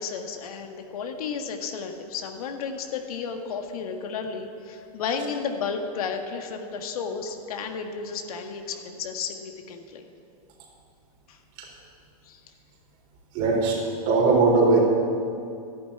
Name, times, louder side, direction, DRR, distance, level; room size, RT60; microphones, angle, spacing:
voice 1, 0.0-10.1 11.3-11.4 12.3-12.4, left 5 dB, 70° left, 4 dB, 1.8 m, -33 dB
voice 2, 13.3-13.8 14.1-14.8, right 3 dB, 45° right, -1 dB, 4.4 m, -19 dB
12.5 x 11.0 x 8.7 m, 2.5 s
hypercardioid pair, 120°, 20 cm